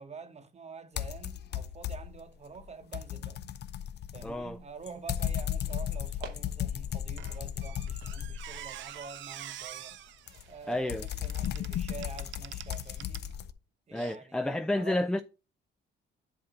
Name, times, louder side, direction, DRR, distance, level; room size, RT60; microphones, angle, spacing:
voice 1, 0.0-3.4 4.1-10.0 10.5-13.3 13.9-15.0, right 4 dB, 35° right, 0.9 m, -47 dB
sound 1, 1.0-2.2 2.6-8.8 10.3-13.5, left 10 dB, 60° left, 0.5 m, -35 dB
voice 2, 4.2-4.6 10.7-11.1 13.9-15.2, left 1 dB, 5° left, 0.3 m, -30 dB
sound 2, 6.1-11.6, right 7 dB, 90° right, 0.9 m, -54 dB
Squeak, 7.2-13.3 13.9-14.1, right 12 dB, 70° right, 0.5 m, -46 dB
7.7 x 2.8 x 5.9 m
cardioid pair, 90°, 20 cm